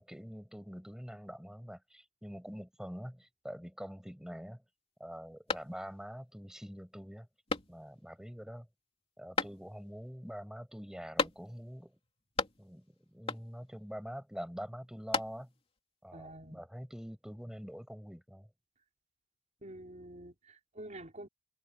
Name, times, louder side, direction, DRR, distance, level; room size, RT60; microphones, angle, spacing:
voice 1, 0.0-4.6 5.0-7.3 7.7-8.7 9.2-12.0 12.6-15.5 16.0-18.5, equal, 5° right, 7.5 m, -45 dB
sound 1, 5.5-6.2 6.6-6.7 7.5-8.1 9.4-10.0 11.2-11.8 12.0-12.9 13.3-13.8 14.8-15.7, left 4 dB, 30° left, 3.2 m, -37 dB
voice 2, 16.1-16.6 19.6-21.3, right 1 dB, 40° right, 5.4 m, -48 dB
head